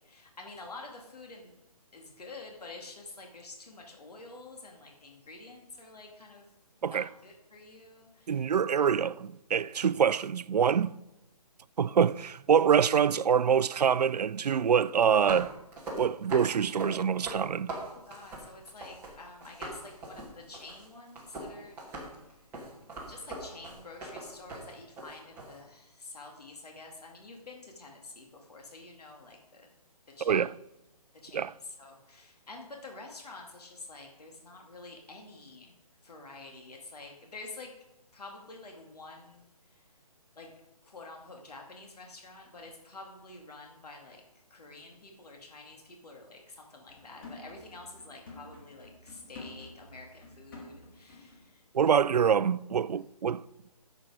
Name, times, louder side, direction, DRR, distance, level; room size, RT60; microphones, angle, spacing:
voice 1, 0.0-1.6 1.9-6.5 6.8-8.5 17.9-21.8 22.2-22.4 23.0-29.7 30.1-30.5 31.1-35.8 36.0-37.7 38.1-39.9 40.4-40.5 40.8-44.2 44.5-51.7, left 3 dB, 75° left, 2.3 m, -48 dB
voice 2, 8.3-11.0 11.8-15.5 16.0-17.7 30.2-30.5 31.3-31.5 51.7-53.4, right 7 dB, 85° right, 0.4 m, -25 dB
sound 1, 15.1-19.1 19.4-25.6, right 2 dB, 10° right, 2.0 m, -41 dB
sound 2, 46.9-51.5 51.8-51.9, left 2 dB, 35° left, 2.7 m, -50 dB
11.5 x 7.4 x 4.9 m
hypercardioid pair, 160°, 20 cm